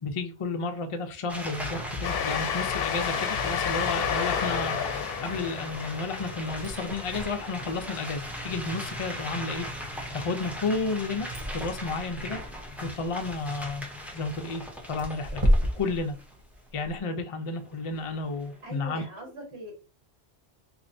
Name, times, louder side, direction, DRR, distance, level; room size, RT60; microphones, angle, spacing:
voice 1, 0.0-4.9 5.2-12.4 12.8-13.8 14.1-14.6 14.9-16.2 16.7-19.0, left 3 dB, 45° left, 0.4 m, -32 dB
sound 1, 1.3-16.4 17.1-17.2 17.4-18.8, equal, ahead, 0.6 m, -39 dB
Train, 2.0-8.2, left 7 dB, 70° left, 0.8 m, -31 dB
sound 2, 6.6-17.0, equal, 30° right, 1.0 m, -33 dB
voice 2, 18.6-19.7, right 1 dB, 75° right, 1.9 m, -41 dB
4.1 x 2.9 x 2.6 m
omnidirectional pair, 1.1 m